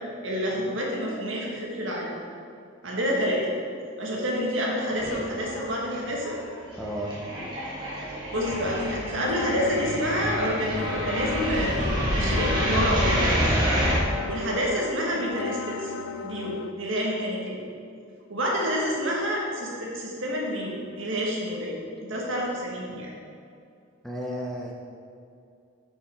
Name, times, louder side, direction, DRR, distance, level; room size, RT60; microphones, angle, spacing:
voice 1, 0.2-2.1 2.8-3.5 4.0-6.4 8.3-13.3 14.3-16.0 16.2-17.6 18.3-23.1, equal, 70° right, -3 dB, 1.7 m, -28 dB
sound 1, 5.0-5.6 5.9-14.0, equal, 20° right, 1.6 m, -28 dB
voice 2, 6.8-7.1 24.0-24.7, equal, ahead, -3 dB, 0.7 m, -32 dB
sound 2, 8.3-16.7, left 6 dB, 85° left, 0.4 m, -35 dB
8.1 x 5.6 x 4.4 m, 2.4 s
head